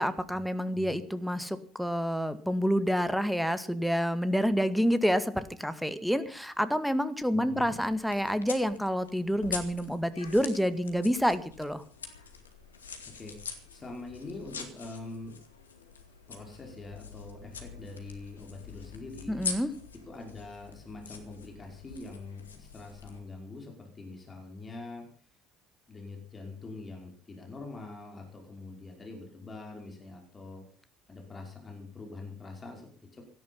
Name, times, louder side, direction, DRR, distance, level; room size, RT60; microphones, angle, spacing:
voice 1, 0.0-11.8 19.3-19.7, equal, ahead, 12 dB, 2.0 m, -28 dB
voice 2, 7.3-7.8 13.0-15.4 16.3-19.5 20.1-25.1 25.9-30.6 31.1-33.2, left 3 dB, 25° left, 2 dB, 5.5 m, -44 dB
sound 1, 7.6-23.2, left 5 dB, 90° left, 2.3 m, -44 dB
18.0 x 13.0 x 5.7 m, 0.43 s
hypercardioid pair, 60°, 0 cm